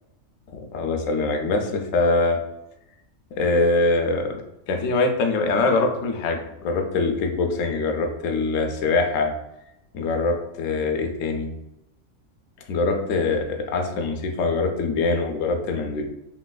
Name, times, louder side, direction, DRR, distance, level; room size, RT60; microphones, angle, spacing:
voice 1, 0.7-2.4 3.4-4.4 4.7-9.3 9.9-11.5 12.7-16.0, left 3 dB, 75° left, 3 dB, 0.9 m, -23 dB
3.1 x 2.8 x 2.2 m, 0.87 s
omnidirectional pair, 1.4 m